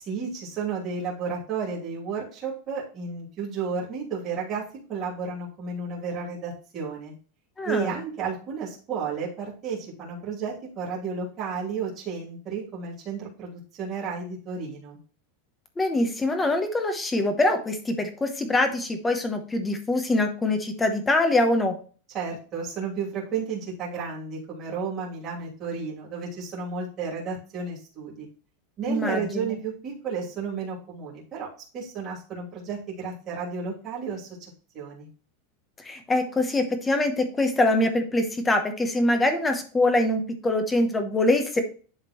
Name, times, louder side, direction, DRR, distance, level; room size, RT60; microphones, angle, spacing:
voice 1, 0.1-4.6 4.9-7.1 7.6-15.0 22.1-28.3 28.8-31.5 31.7-35.1, right 5 dB, 25° right, -5 dB, 2.8 m, -32 dB
voice 2, 7.6-7.9 15.8-21.7 28.9-29.6 35.8-41.6, left 2 dB, 10° left, 6 dB, 0.9 m, -24 dB
11.0 x 3.7 x 3.0 m, 0.39 s
supercardioid pair, 170°, 0 cm